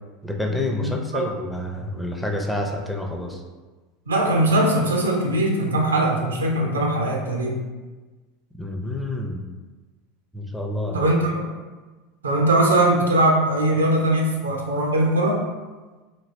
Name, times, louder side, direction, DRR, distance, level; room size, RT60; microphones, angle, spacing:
voice 1, 0.2-3.4 8.6-9.4 10.3-11.1, left 1 dB, 5° left, 0 dB, 0.5 m, -28 dB
voice 2, 0.8-1.3 4.1-7.6 10.9-11.5 12.2-15.4, right 1 dB, 80° right, 0 dB, 0.4 m, -21 dB
3.0 x 2.7 x 2.7 m, 1.3 s
figure-of-eight pair, 80°, 0 cm